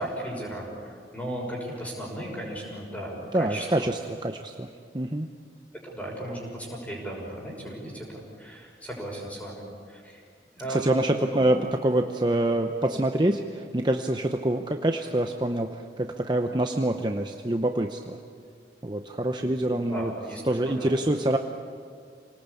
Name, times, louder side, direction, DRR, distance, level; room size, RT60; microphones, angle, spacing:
voice 1, 0.0-3.9 5.8-10.2 10.5-11.0 11.3-11.5 19.4-21.0, right 1 dB, 10° left, -2 dB, 6.1 m, -36 dB
voice 2, 3.3-4.7 4.9-5.3 10.7-11.6 11.8-18.2 18.8-20.1 20.5-21.4, right 1 dB, 25° right, 4 dB, 0.8 m, -26 dB
27.5 x 19.0 x 8.5 m, 2.2 s
head